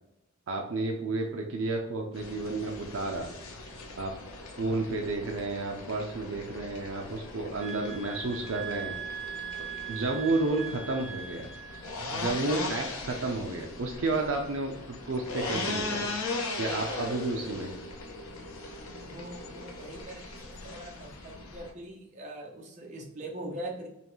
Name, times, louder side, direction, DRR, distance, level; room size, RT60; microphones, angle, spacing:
voice 1, 0.5-3.3 4.0-4.1 4.6-9.0 9.9-11.5 12.1-16.1 16.6-17.8, right 2 dB, 60° right, 2 dB, 0.5 m, -31 dB
sound 1, 2.1-21.7, left 2 dB, 75° left, 0.8 m, -39 dB
sound 2, 7.6-11.9, right 8 dB, 10° right, 0.9 m, -40 dB
voice 2, 19.0-23.9, right 1 dB, 35° right, 0 dB, 0.8 m, -42 dB
5.6 x 2.3 x 3.0 m, 0.86 s
head